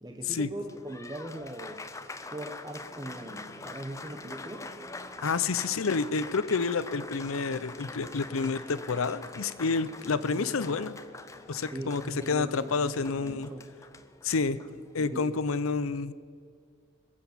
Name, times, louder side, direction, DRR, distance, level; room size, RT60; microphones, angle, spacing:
voice 1, 0.0-1.8 2.3-4.6 10.3-10.9 11.7-13.6 14.3-14.4 15.0-15.3, right 1 dB, 20° right, 4 dB, 0.8 m, -40 dB
Applause, 0.5-15.2, left 3 dB, 15° left, 0.5 m, -45 dB
sound 1, 2.8-13.0, left 1 dB, 30° left, 2.0 m, -53 dB
voice 2, 5.2-11.0 11.5-13.5 14.2-14.6 14.9-16.1, left 4 dB, 90° left, 15 dB, 0.6 m, -29 dB
21.0 x 7.9 x 7.2 m, 2.1 s
head